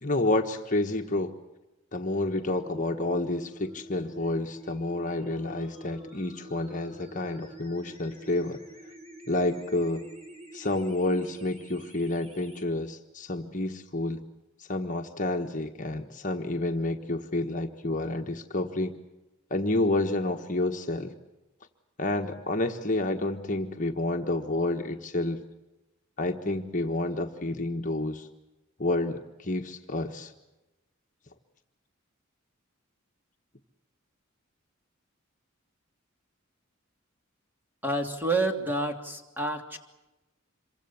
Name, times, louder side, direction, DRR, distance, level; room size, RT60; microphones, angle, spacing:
voice 1, 0.0-1.3 1.9-8.6 9.3-10.0 10.5-14.2 14.6-18.9 19.5-21.1 22.0-25.4 26.2-28.3 28.8-30.3, left 2 dB, 40° left, 3 dB, 1.4 m, -29 dB
sound 1, 2.6-12.6, equal, 30° right, 5.2 m, -47 dB
voice 2, 37.8-39.8, right 2 dB, 10° right, 3 dB, 3.0 m, -29 dB
27.0 x 24.0 x 7.2 m, 1.0 s
head